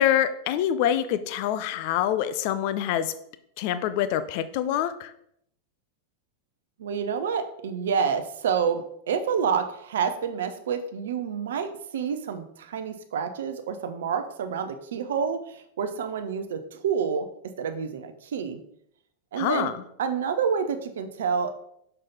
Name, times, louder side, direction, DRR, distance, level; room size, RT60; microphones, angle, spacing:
voice 1, 0.0-3.1 3.6-5.1 19.4-19.8, left 10 dB, 45° left, 13 dB, 0.5 m, -25 dB
voice 2, 6.8-17.3 17.6-18.6 19.3-19.7 20.0-21.6, right 6 dB, 60° right, 8 dB, 0.6 m, -28 dB
6.4 x 5.4 x 4.0 m, 0.72 s
figure-of-eight pair, 90°, 0 cm